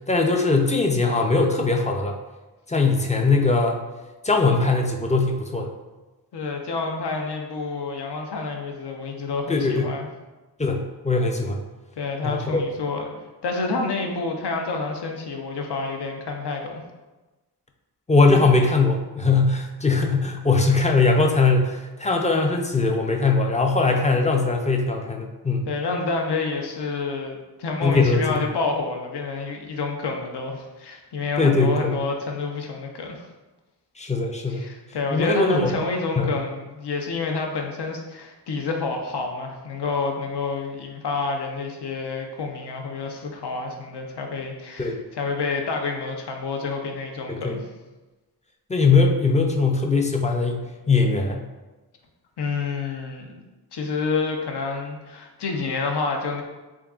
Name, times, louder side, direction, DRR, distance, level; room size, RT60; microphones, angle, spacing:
voice 1, 0.1-2.2 2.7-3.8 4.2-5.7 9.5-10.0 10.6-11.6 12.2-12.6 18.1-25.7 27.8-28.4 31.4-32.0 34.0-34.7 35.1-35.8 36.2-36.3 44.8-45.0 47.3-47.6 48.7-51.5, left 3 dB, 20° left, 2 dB, 0.3 m, -21 dB
voice 2, 6.3-10.1 12.0-13.2 13.4-16.8 25.7-33.3 34.5-47.6 52.4-53.4 53.7-56.4, left 4 dB, 75° left, 2 dB, 0.6 m, -28 dB
3.6 x 3.6 x 2.3 m, 1.1 s
wide cardioid pair, 80°, 40 cm